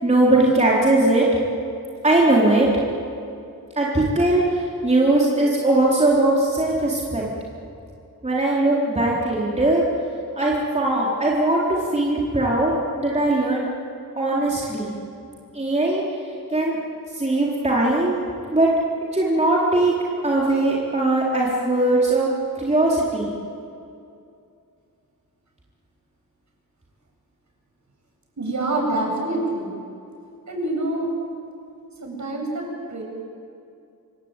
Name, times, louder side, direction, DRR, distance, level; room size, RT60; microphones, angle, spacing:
voice 1, 0.0-1.3 2.0-2.7 3.8-7.2 8.2-9.8 10.4-13.6 14.2-15.0 15.5-16.0 16.5-16.8 17.2-18.2 18.5-18.7 19.1-19.9 20.2-22.3 22.6-23.3, right 2 dB, 20° right, -4 dB, 4.1 m, -20 dB
voice 2, 28.4-29.7 30.5-31.1 32.0-33.0, right 2 dB, 55° right, 0 dB, 7.9 m, -26 dB
27.0 x 23.5 x 9.2 m, 2.5 s
wide cardioid pair, 110°, 35 cm